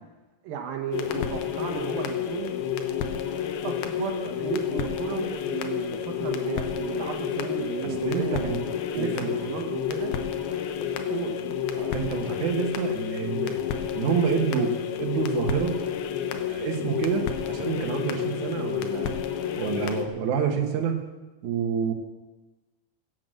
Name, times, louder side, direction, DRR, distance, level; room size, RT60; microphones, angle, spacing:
voice 1, 0.4-2.5 3.6-8.6 8.9-10.2 11.1-11.4, right 8 dB, 75° right, 4 dB, 2.8 m, -34 dB
sound 1, 0.9-20.1, left 8 dB, 90° left, 2.9 m, -30 dB
voice 2, 7.8-8.6 8.9-9.3 11.7-13.6 13.9-15.8 16.5-19.1 19.6-20.9 21.4-21.9, right 7 dB, 60° right, 3 dB, 2.5 m, -28 dB
16.0 x 7.8 x 7.7 m, 1.2 s
omnidirectional pair, 4.3 m